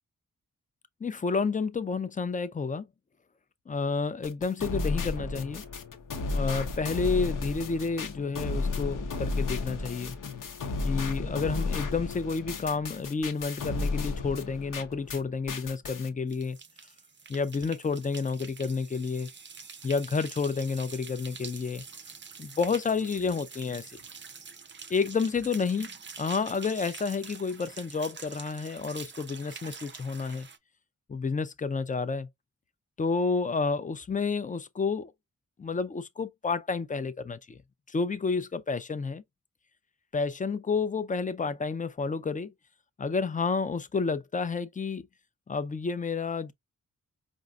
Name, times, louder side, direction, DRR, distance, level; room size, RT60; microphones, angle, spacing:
voice 1, 1.0-2.9 3.7-5.6 6.3-10.2 10.8-16.6 17.3-19.3 19.8-21.8 22.4-23.9 24.9-30.5 31.1-32.3 33.0-35.1 35.6-37.6 37.9-39.2 40.1-42.5 43.0-45.1 45.5-46.5, left 4 dB, 25° left, 0.4 m, -30 dB
sound 1, 4.2-15.2 15.5-16.1, left 3 dB, 85° left, 0.8 m, -33 dB
sound 2, 16.3-30.6, right 5 dB, 35° right, 0.5 m, -46 dB
5.2 x 2.5 x 2.3 m
wide cardioid pair, 130°, 31 cm